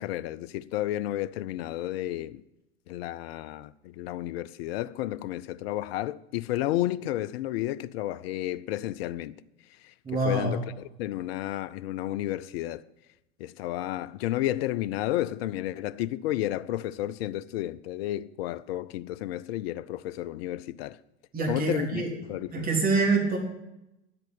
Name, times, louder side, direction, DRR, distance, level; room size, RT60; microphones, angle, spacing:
voice 1, 0.0-2.4 2.9-9.3 9.7-9.9 10.2-10.6 11.0-12.8 13.4-21.0 21.5-22.0 22.3-22.7, left 14 dB, 55° left, 0.7 m, -32 dB
voice 2, 10.0-10.6 21.3-22.1 22.5-23.4, right 3 dB, 25° right, 3.4 m, -25 dB
10.5 x 8.0 x 8.8 m
hypercardioid pair, 90°, 35 cm